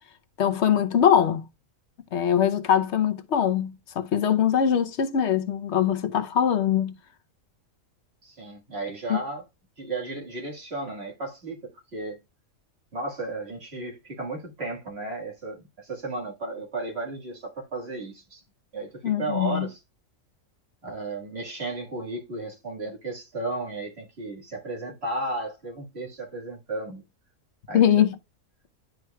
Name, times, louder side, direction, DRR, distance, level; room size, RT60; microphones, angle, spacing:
voice 1, 0.4-1.4 2.1-6.9 9.1-9.2 19.0-19.7 27.7-28.1, left 9 dB, 60° left, 0.9 m, -22 dB
voice 2, 8.2-9.4 9.8-12.2 12.9-18.4 18.7-19.8 20.8-27.0 27.7-27.8, right 2 dB, 50° right, 1.9 m, -34 dB
11.0 x 4.6 x 2.2 m
omnidirectional pair, 1.4 m